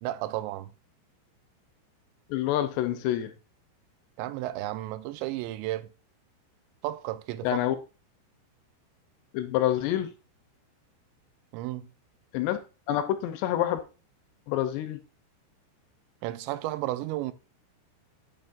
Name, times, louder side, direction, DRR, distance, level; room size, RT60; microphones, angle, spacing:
voice 1, 0.0-0.7 4.2-5.9 6.8-7.6 11.5-11.9 16.2-17.3, right 15 dB, 85° right, 2.8 m, -33 dB
voice 2, 2.3-3.3 7.4-7.8 9.3-10.1 12.3-12.6 12.9-13.8 14.5-15.0, left 12 dB, 80° left, 2.7 m, -27 dB
9.3 x 7.5 x 2.5 m
omnidirectional pair, 5.2 m